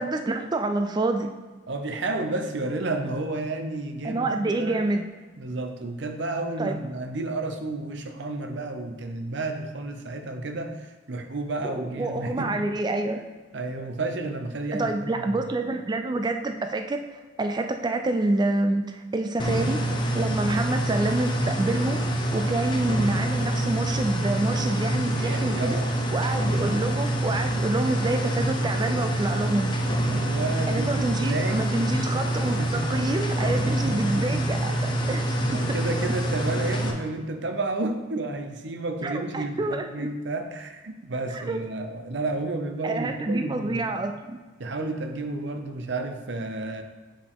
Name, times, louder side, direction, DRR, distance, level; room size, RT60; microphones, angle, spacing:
voice 1, 0.0-1.3 4.0-5.1 6.6-6.8 11.6-13.2 14.7-19.8 20.1-22.0 22.3-25.8 26.1-29.7 30.7-35.2 35.5-35.6 39.0-40.1 41.3-41.6 42.8-44.4, right 2 dB, 20° right, 6 dB, 0.3 m, -27 dB
voice 2, 1.7-4.8 5.4-12.6 13.5-15.4 25.1-25.9 30.0-31.7 32.4-33.0 33.6-34.4 35.5-43.9 44.6-46.8, right 2 dB, 65° right, 6 dB, 0.7 m, -31 dB
sound 1, 19.4-36.9, right 1 dB, 25° left, 0.7 m, -26 dB
7.2 x 4.7 x 3.6 m, 1.3 s
head